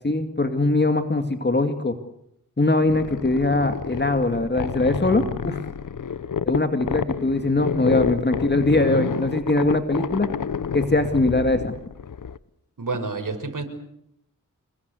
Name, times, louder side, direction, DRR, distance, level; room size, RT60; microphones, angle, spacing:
voice 1, 0.0-2.0 2.6-5.6 6.5-10.3 10.7-11.7, left 2 dB, 30° left, 7 dB, 2.2 m, -21 dB
sound 1, 2.9-12.4, left 7 dB, 75° left, 1.0 m, -29 dB
voice 2, 12.8-13.6, right 3 dB, 75° right, 7 dB, 5.7 m, -29 dB
28.0 x 22.0 x 8.3 m, 0.77 s
wide cardioid pair, 75°, 32 cm